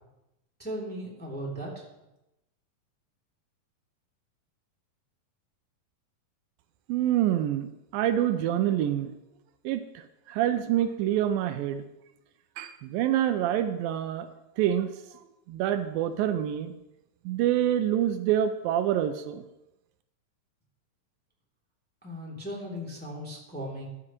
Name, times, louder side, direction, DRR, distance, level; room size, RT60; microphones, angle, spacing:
voice 1, 0.6-1.8 22.0-23.9, equal, 5° left, -4 dB, 2.1 m, -37 dB
voice 2, 6.9-7.7 7.9-9.1 9.7-9.8 10.3-11.8 12.6-14.3 14.6-14.9 15.5-16.7 17.3-19.5, right 11 dB, 85° right, 10 dB, 2.3 m, -26 dB
14.5 x 9.8 x 3.0 m, 0.92 s
omnidirectional pair, 4.1 m